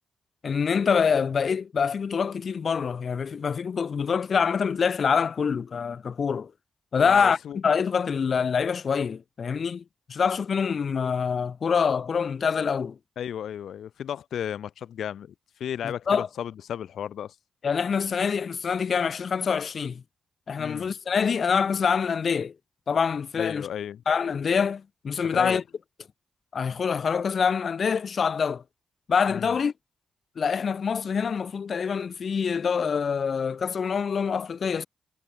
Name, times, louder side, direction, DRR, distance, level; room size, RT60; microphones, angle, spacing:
voice 1, 0.4-6.5 6.9-9.8 10.1-13.0 15.8-16.3 17.6-20.0 20.5-22.5 22.9-23.7 24.1-25.6 26.5-28.6 29.1-29.7 30.4-34.9, left 6 dB, 60° left, 1.0 m, -25 dB
voice 2, 7.0-7.6 13.2-15.3 15.6-17.3 20.6-20.9 23.4-24.0 25.3-25.6 29.3-29.6, left 9 dB, 80° left, 6.1 m, -34 dB
supercardioid pair, 50°, 0 cm